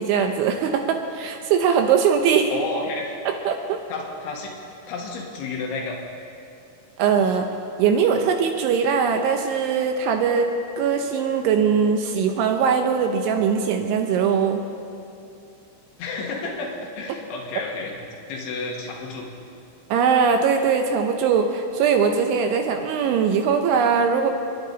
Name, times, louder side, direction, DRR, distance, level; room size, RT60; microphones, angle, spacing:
voice 1, 0.0-2.5 3.3-3.8 7.0-7.5 7.8-14.6 19.9-24.3, right 6 dB, 80° right, 4 dB, 3.0 m, -21 dB
voice 2, 2.5-3.2 3.9-4.6 4.9-6.0 16.0-18.0 18.3-19.3, left 3 dB, 70° left, -1 dB, 3.6 m, -31 dB
29.0 x 10.5 x 4.0 m, 2.7 s
omnidirectional pair, 5.9 m